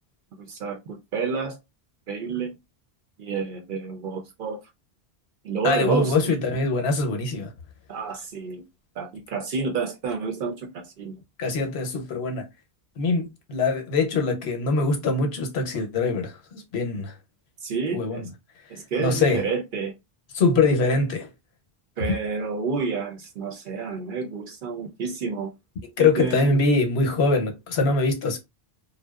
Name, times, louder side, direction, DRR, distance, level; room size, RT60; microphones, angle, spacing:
voice 1, 0.4-1.6 2.1-2.6 3.2-4.6 5.4-6.4 7.9-8.6 9.0-11.2 17.6-18.3 18.7-19.9 22.0-25.5 26.0-26.6, right 5 dB, 60° right, 0.6 m, -29 dB
voice 2, 5.6-7.5 11.4-12.5 13.0-17.1 17.9-18.2 19.0-19.4 20.3-21.3 26.0-28.4, left 3 dB, 75° left, 0.9 m, -23 dB
2.6 x 2.1 x 2.3 m
omnidirectional pair, 1.1 m